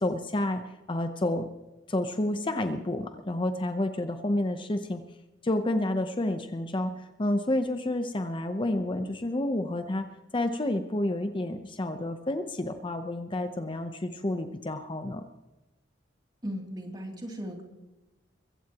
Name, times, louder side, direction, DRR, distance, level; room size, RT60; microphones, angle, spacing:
voice 1, 0.0-0.6 0.9-1.5 1.9-5.0 5.4-10.1 10.3-15.3, left 1 dB, 25° left, 7 dB, 0.8 m, -29 dB
voice 2, 16.4-17.6, equal, 25° right, 1 dB, 2.9 m, -37 dB
24.0 x 15.5 x 3.0 m, 1.0 s
head